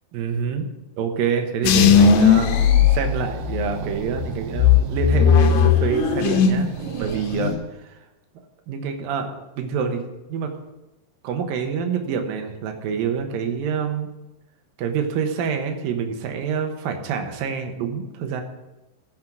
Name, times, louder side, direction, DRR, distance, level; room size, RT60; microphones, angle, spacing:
voice 1, 0.1-0.7 1.0-2.5 2.9-6.7 7.0-8.0 8.7-10.5 11.2-14.1 14.8-18.4, right 6 dB, 70° right, 5 dB, 2.8 m, -26 dB
sound 1, 1.6-3.7 4.1-6.7 7.0-7.6, left 7 dB, 80° left, 2.7 m, -17 dB
sound 2, 2.3-7.6, right 8 dB, 90° right, 2.8 m, -35 dB
14.5 x 6.4 x 6.1 m, 0.98 s
omnidirectional pair, 4.4 m